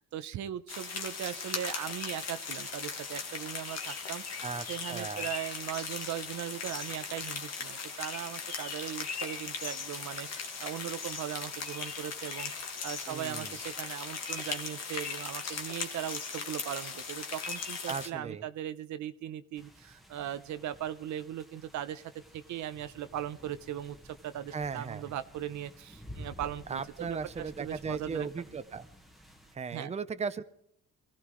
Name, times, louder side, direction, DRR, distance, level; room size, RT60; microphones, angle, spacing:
voice 1, 0.0-28.3 29.7-29.9, right 11 dB, 70° right, 12 dB, 0.7 m, -39 dB
sound 1, 0.7-18.1, left 5 dB, 60° left, 1.9 m, -38 dB
voice 2, 4.4-5.3 13.1-13.6 17.9-18.4 24.5-25.0 26.7-28.9 29.5-30.4, right 5 dB, 20° right, 12 dB, 0.7 m, -37 dB
sound 2, 19.6-29.5, equal, ahead, 1.5 m, -52 dB
22.5 x 15.0 x 3.1 m, 0.72 s
cardioid pair, 90°, 30 cm